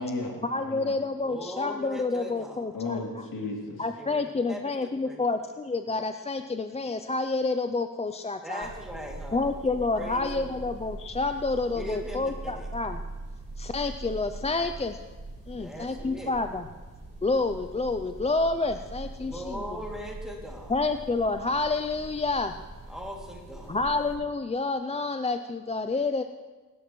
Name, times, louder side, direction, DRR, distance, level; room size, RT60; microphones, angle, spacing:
voice 1, 0.0-1.0 2.7-3.8, left 3 dB, 70° left, -1 dB, 2.8 m, -34 dB
voice 2, 0.5-3.2 3.8-8.7 9.3-13.0 13.6-15.0 15.5-16.7 17.2-19.8 20.7-22.5 23.7-26.2, left 3 dB, 20° left, 8 dB, 0.4 m, -29 dB
voice 3, 1.2-2.7 4.0-5.3 8.4-9.5 9.9-10.6 11.7-12.7 15.5-16.3 19.2-20.8 22.9-23.8, equal, ahead, -2 dB, 2.5 m, -40 dB
sound 1, 8.6-24.1, right 2 dB, 20° right, 5.0 m, -42 dB
22.5 x 11.5 x 3.1 m, 1.3 s
wide cardioid pair, 120°, 33 cm